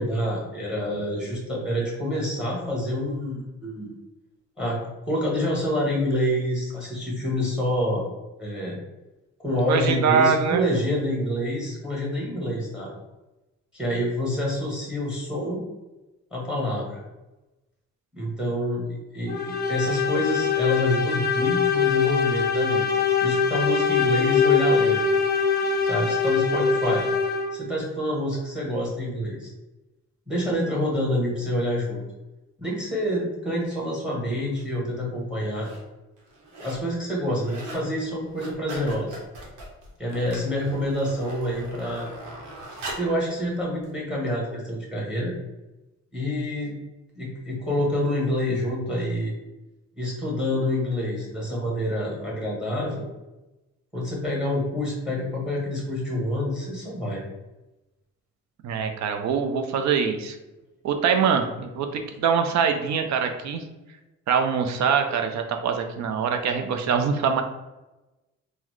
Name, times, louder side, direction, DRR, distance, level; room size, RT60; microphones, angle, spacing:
voice 1, 0.0-3.9 4.6-4.8 5.1-8.0 8.4-8.8 9.4-12.9 13.7-15.6 16.3-17.0 18.1-22.9 23.2-25.0 25.9-27.0 27.5-29.5 30.3-32.0 32.6-35.7 36.6-39.2 40.0-42.1 42.9-45.3 46.1-46.7 47.2-49.3 50.0-53.0 53.9-57.2, left 1 dB, 5° right, -3 dB, 1.1 m, -27 dB
voice 2, 9.7-10.6 58.6-60.4 60.8-63.6 64.3-67.4, right 6 dB, 65° right, 6 dB, 0.5 m, -23 dB
sound 1, 19.3-27.7, left 5 dB, 35° left, 0.5 m, -23 dB
sound 2, 34.6-34.7 35.4-35.8 36.2-36.9 37.2-37.9 38.2-43.2 43.8-43.9, right 1 dB, 80° right, 0.9 m, -40 dB
3.7 x 2.1 x 3.1 m, 1.0 s
cardioid pair, 90°, 30 cm